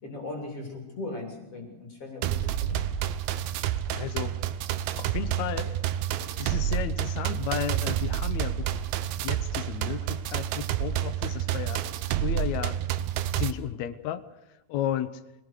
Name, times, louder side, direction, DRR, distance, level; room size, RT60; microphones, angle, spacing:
voice 1, 0.0-2.8, left 2 dB, 40° left, 0 dB, 3.9 m, -38 dB
sound 1, 2.2-13.5, right 11 dB, 85° right, 2.7 m, -29 dB
voice 2, 3.9-4.3 4.9-5.8 6.4-8.7 9.2-11.8 12.1-12.8 13.3-14.2 14.7-15.1, left 11 dB, 75° left, 11 dB, 1.7 m, -33 dB
24.5 x 18.0 x 6.6 m, 0.92 s
omnidirectional pair, 4.2 m